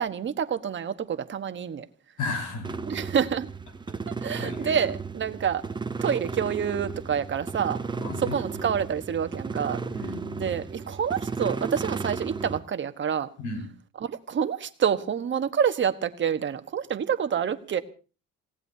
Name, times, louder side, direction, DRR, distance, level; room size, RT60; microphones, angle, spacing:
voice 1, 0.0-1.9 2.9-3.5 4.1-5.6 6.0-7.8 8.2-9.8 10.4-13.3 14.0-17.8, right 8 dB, 35° right, 9 dB, 1.2 m, -27 dB
voice 2, 2.2-2.8 4.3-4.8 8.0-8.4 9.9-10.5 13.4-13.7, left 3 dB, 65° left, 4 dB, 5.6 m, -34 dB
sound 1, 2.6-12.6, right 4 dB, 15° right, 0.7 m, -34 dB
28.5 x 17.5 x 2.8 m, 0.36 s
cardioid pair, 150°, 33 cm